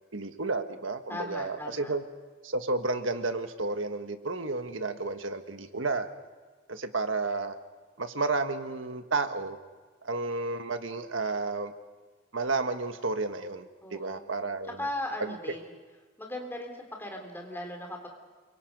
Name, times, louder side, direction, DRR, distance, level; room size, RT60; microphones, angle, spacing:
voice 1, 0.1-2.0 2.4-6.1 6.7-7.6 8.0-9.6 10.0-11.7 12.3-14.9 15.2-15.3, right 3 dB, 75° right, 7 dB, 1.6 m, -31 dB
voice 2, 1.1-1.9 13.8-14.3 14.7-15.7 16.2-18.1, left 1 dB, 10° left, 2 dB, 3.5 m, -38 dB
28.0 x 24.5 x 5.4 m, 1.4 s
head